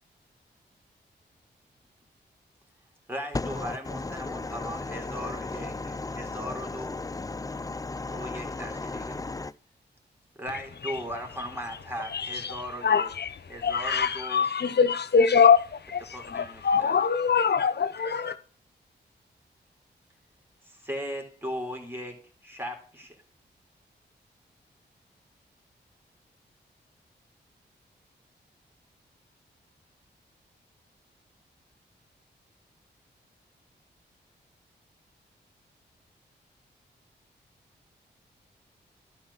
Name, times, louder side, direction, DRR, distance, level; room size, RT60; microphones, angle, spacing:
voice 1, 3.1-7.0 8.1-9.2 10.4-13.1 13.5-14.5 16.1-17.0 20.6-23.2, equal, 10° right, 4.0 m, -38 dB
voice 2, 5.8-6.3 7.0-8.4 9.1-9.5, left 3 dB, 20° left, 0.6 m, -35 dB
voice 3, 12.1-18.4, left 6 dB, 60° left, 0.9 m, -24 dB
11.5 x 4.9 x 7.2 m
cardioid pair, 45°, 19 cm